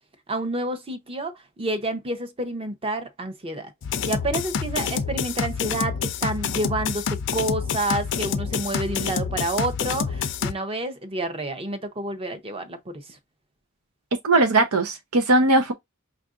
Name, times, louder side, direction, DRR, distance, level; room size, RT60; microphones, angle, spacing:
voice 1, 0.3-3.7 4.0-13.2, right 1 dB, 25° right, 0.7 m, -29 dB
sound 1, 3.8-10.5, left 6 dB, 55° left, 0.4 m, -27 dB
voice 2, 14.2-15.7, right 2 dB, 90° right, 0.7 m, -19 dB
5.6 x 2.5 x 2.4 m
head